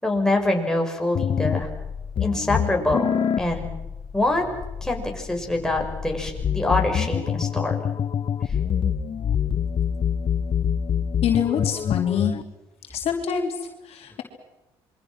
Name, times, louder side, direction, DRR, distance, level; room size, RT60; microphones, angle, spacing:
voice 1, 0.0-1.7 2.2-3.1 3.4-3.7 4.1-4.5 4.8-7.9 8.4-8.5, left 2 dB, 5° left, 1 dB, 6.8 m, -25 dB
sound 1, 1.2-12.4, left 8 dB, 50° left, 1.2 m, -26 dB
voice 2, 11.2-12.3 12.9-14.2, left 8 dB, 70° left, 3 dB, 3.1 m, -25 dB
27.5 x 23.5 x 6.2 m, 0.99 s
supercardioid pair, 60°, 11 cm